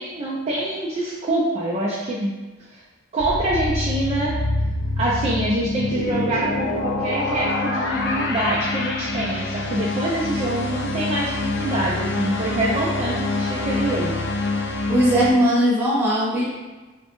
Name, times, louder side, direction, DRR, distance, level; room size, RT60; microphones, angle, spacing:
voice 1, 0.0-2.3 2.7-2.8 3.1-4.3 5.0-14.2, right 1 dB, 30° right, -6 dB, 0.3 m, -25 dB
sound 1, 3.2-15.3, left 2 dB, 60° left, 0.3 m, -26 dB
voice 2, 14.9-16.5, equal, 10° right, -8 dB, 0.7 m, -18 dB
3.3 x 2.1 x 2.9 m, 1.2 s
head